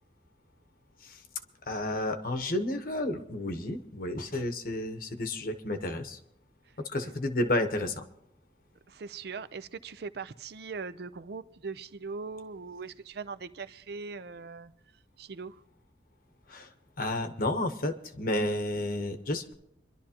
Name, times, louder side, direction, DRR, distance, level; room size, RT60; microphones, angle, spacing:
voice 1, 1.6-6.2 6.8-8.0 16.5-19.5, left 1 dB, 50° left, 1.0 m, -31 dB
voice 2, 8.9-14.7 15.2-15.6, right 4 dB, 60° right, 0.5 m, -40 dB
26.5 x 11.5 x 2.9 m
head